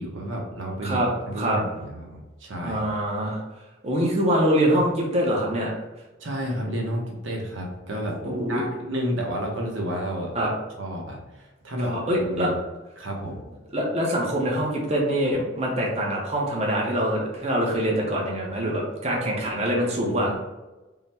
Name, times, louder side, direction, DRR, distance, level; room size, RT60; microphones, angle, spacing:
voice 1, 0.0-2.8 6.2-8.2 8.5-10.3 10.8-12.6 13.0-13.4, equal, 80° right, 0 dB, 0.8 m, -31 dB
voice 2, 2.6-3.4 3.8-5.7 8.2-8.7 10.3-10.5 11.8-12.5 13.7-20.3, equal, 35° right, -3 dB, 0.7 m, -24 dB
3.8 x 2.1 x 4.2 m, 1.1 s
head